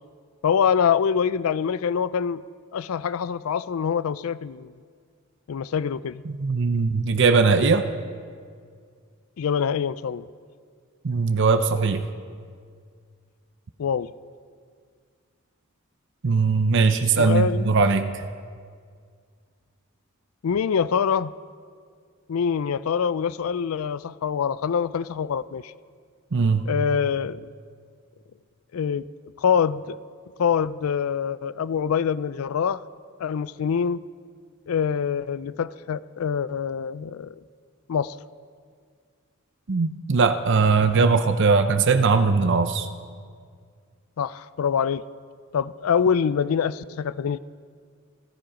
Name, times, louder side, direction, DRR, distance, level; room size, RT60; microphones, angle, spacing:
voice 1, 0.4-2.4 2.7-4.7 5.5-6.2 9.4-10.3 13.8-14.1 17.2-17.7 20.4-21.3 22.3-25.7 26.7-27.4 28.7-29.0 29.4-30.0 30.4-32.8 33.2-34.0 34.7-37.4 37.9-38.2 44.2-45.0 45.5-47.4, left 7 dB, 85° left, 17 dB, 0.4 m, -25 dB
voice 2, 6.3-7.9 11.0-12.1 16.2-18.2 26.3-26.7 39.7-42.9, right 4 dB, 60° right, 8 dB, 0.7 m, -20 dB
27.0 x 10.5 x 5.0 m, 2.1 s
head